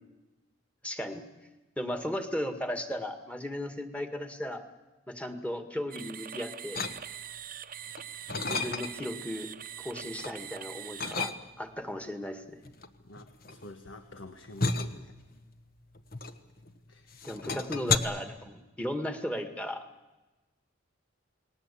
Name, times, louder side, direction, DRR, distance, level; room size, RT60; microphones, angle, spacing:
voice 1, 0.8-1.2 1.8-4.6 5.1-6.8 8.5-9.5 9.8-12.6 17.2-19.9, equal, 5° left, 7 dB, 1.8 m, -36 dB
sound 1, 5.9-11.3, right 9 dB, 45° right, 0.9 m, -43 dB
sound 2, 6.7-7.4 7.9-9.2 9.6-10.4 11.0-11.8 12.6-16.8 17.1-18.0, left 4 dB, 45° left, 1.3 m, -33 dB
voice 2, 13.0-15.1 16.9-17.1, left 1 dB, 75° left, 7 dB, 1.5 m, -48 dB
29.5 x 19.5 x 8.5 m, 1.2 s
head